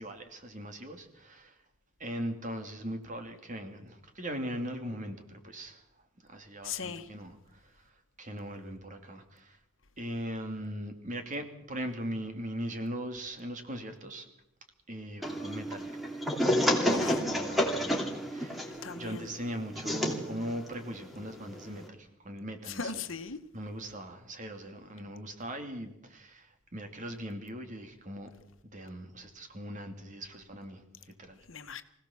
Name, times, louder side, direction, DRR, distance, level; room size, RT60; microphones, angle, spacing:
voice 1, 0.0-1.6 2.0-5.8 6.3-7.7 8.2-9.6 10.0-14.3 14.9-16.1 16.8-22.9 23.5-28.3 28.6-31.4, equal, 35° right, 6 dB, 2.7 m, -40 dB
voice 2, 6.6-7.1 16.9-17.3 18.8-19.3 22.7-23.4 31.5-31.8, left 5 dB, 65° left, 9 dB, 1.4 m, -38 dB
sound 1, 15.2-21.9, equal, ahead, 2.9 m, -31 dB
25.0 x 17.0 x 7.2 m, 0.82 s
head